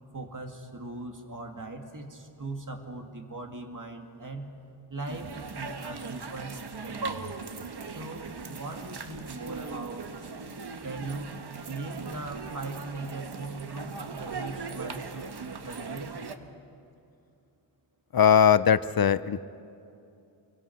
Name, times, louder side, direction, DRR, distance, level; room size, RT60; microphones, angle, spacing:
voice 1, 0.1-4.5 4.9-7.4 7.8-10.1 10.8-15.4 15.6-16.1, right 2 dB, 40° right, 4 dB, 2.4 m, -39 dB
sound 1, 5.1-16.4, right 4 dB, 55° right, 1.3 m, -39 dB
voice 2, 18.1-19.4, left 8 dB, 50° left, 16 dB, 0.7 m, -20 dB
28.5 x 23.5 x 6.0 m, 2.6 s
wide cardioid pair, 75°, 47 cm